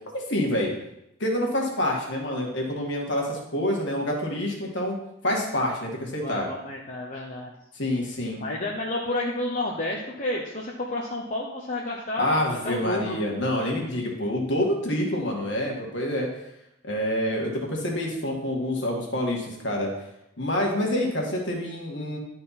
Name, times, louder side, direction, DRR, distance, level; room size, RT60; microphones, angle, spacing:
voice 1, 0.1-0.7 1.2-5.0 5.2-6.5 7.7-8.4 12.2-16.3 16.8-19.9 20.4-22.2, left 1 dB, 55° left, -1 dB, 1.9 m, -27 dB
voice 2, 6.2-7.5 8.4-13.2, left 1 dB, 35° left, -2 dB, 0.9 m, -30 dB
11.5 x 4.4 x 4.2 m, 0.84 s
head